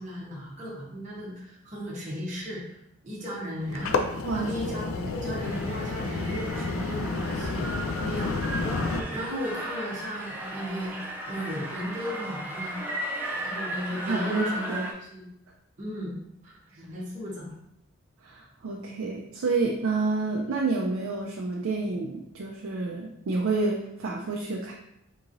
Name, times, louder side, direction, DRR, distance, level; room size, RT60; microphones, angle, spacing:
voice 1, 0.0-2.8 3.0-8.3 9.0-11.0 11.3-12.8 13.4-14.7 15.1-15.2 15.8-16.1 16.4-17.6, equal, 35° right, -5 dB, 0.9 m, -35 dB
sound 1, 3.6-9.0, left 3 dB, 75° left, 0.3 m, -30 dB
sound 2, 5.4-14.9, right 1 dB, 10° right, 0.3 m, -36 dB
voice 2, 14.1-14.9 16.7-16.8 18.2-24.7, right 3 dB, 80° right, -1 dB, 0.4 m, -29 dB
3.7 x 2.9 x 2.6 m, 0.79 s
head